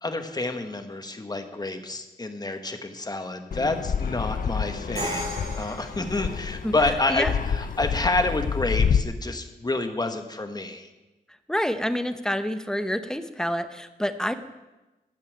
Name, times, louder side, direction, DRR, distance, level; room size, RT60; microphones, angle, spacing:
voice 1, 0.0-10.9, left 2 dB, 25° left, 6 dB, 1.3 m, -29 dB
Fixed-wing aircraft airplane, 3.5-9.0, left 7 dB, 60° left, 0.6 m, -28 dB
Crash cymbal, 5.0-6.9, right 1 dB, 85° right, 5.8 m, -35 dB
voice 2, 11.5-14.4, equal, 5° left, 9 dB, 0.8 m, -27 dB
15.0 x 5.6 x 9.1 m, 1.1 s
wide cardioid pair, 100°, 16 cm